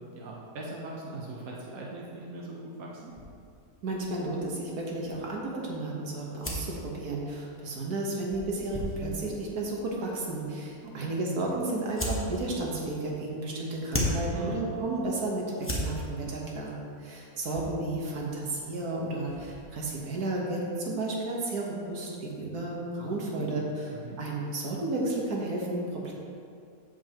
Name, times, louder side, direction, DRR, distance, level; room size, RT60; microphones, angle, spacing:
voice 1, 0.1-3.1 10.8-11.1 14.3-14.7 23.4-24.2, right 2 dB, 70° right, -3 dB, 1.5 m, -40 dB
sound 1, 3.1-20.0, equal, 10° left, 1.0 m, -39 dB
voice 2, 3.8-23.6 24.2-26.1, right 2 dB, 90° right, -2 dB, 1.7 m, -32 dB
14.5 x 5.3 x 2.9 m, 2.4 s
omnidirectional pair, 1.6 m